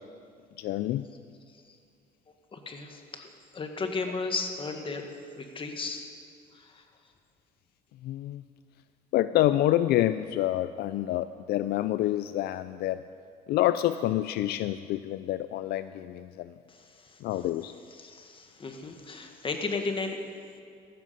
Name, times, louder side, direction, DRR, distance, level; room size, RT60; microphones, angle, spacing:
voice 1, 0.6-1.1 8.0-8.4 9.1-13.0 13.5-16.5 17.2-17.7, left 14 dB, 70° left, 13 dB, 0.4 m, -27 dB
voice 2, 2.5-5.1 5.3-6.1 6.5-6.8 16.7-17.2 17.9-20.2, left 4 dB, 30° left, 5 dB, 1.7 m, -35 dB
14.5 x 13.0 x 5.6 m, 2.3 s
cardioid pair, 110°, 17 cm